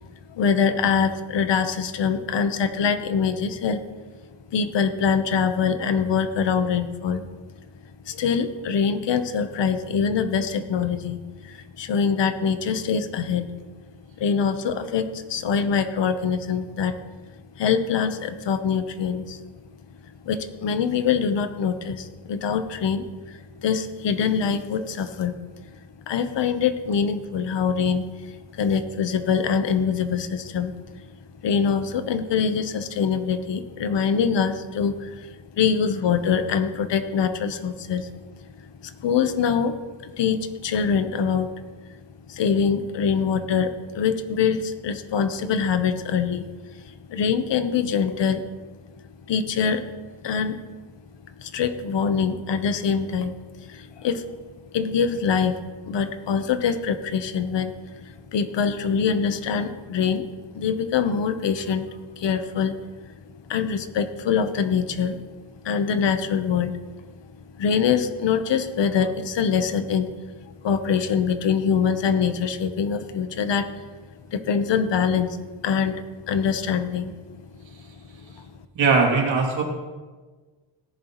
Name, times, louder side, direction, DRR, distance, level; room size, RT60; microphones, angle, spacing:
voice 1, 0.3-3.8 4.5-7.3 8.1-13.5 14.2-17.0 17.6-19.4 20.2-25.4 26.1-30.7 31.4-38.1 38.6-41.5 42.3-46.4 46.8-48.4 49.3-49.8 50.2-50.6 51.4-54.2 54.7-55.6 55.8-60.3 60.5-62.7 63.5-65.2 65.6-66.8 67.6-70.1 70.6-73.7 74.3-77.2 78.3-78.5, left 6 dB, 70° left, 9 dB, 1.0 m, -24 dB
voice 2, 78.7-79.6, right 4 dB, 75° right, 0 dB, 2.8 m, -19 dB
17.5 x 10.5 x 3.1 m, 1.4 s
wide cardioid pair, 155°, 45 cm